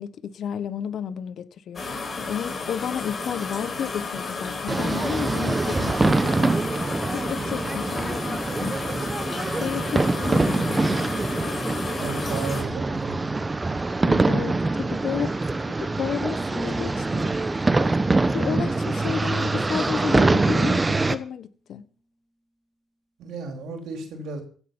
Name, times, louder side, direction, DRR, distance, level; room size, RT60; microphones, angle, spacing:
voice 1, 0.0-1.8 2.2-6.6 7.1-8.8 9.6-11.0 14.0-17.3 18.3-21.8, left 8 dB, 65° left, 1.2 m, -32 dB
sound 1, 1.8-12.6, left 3 dB, 40° left, 4.6 m, -32 dB
sound 2, 4.7-21.2, right 3 dB, 20° right, 1.1 m, -24 dB
voice 2, 12.0-13.3 14.4-14.5 23.2-24.4, right 4 dB, 80° right, 4.3 m, -34 dB
sound 3, 16.6-20.3, equal, 5° left, 1.8 m, -41 dB
16.0 x 8.3 x 7.3 m
cardioid pair, 90°, 0 cm